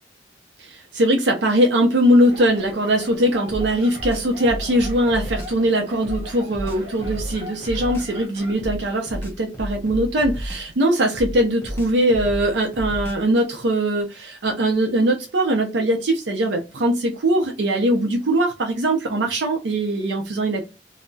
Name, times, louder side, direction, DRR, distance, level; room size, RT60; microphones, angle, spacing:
voice 1, 0.6-20.7, right 1 dB, 85° right, 2 dB, 0.5 m, -21 dB
sound 1, 2.2-8.5, equal, 30° right, 1.0 m, -40 dB
sound 2, 3.5-5.6 6.0-8.2 8.6-10.8 11.1-13.4, equal, 15° left, 0.6 m, -32 dB
2.2 x 2.0 x 3.8 m, 0.28 s
head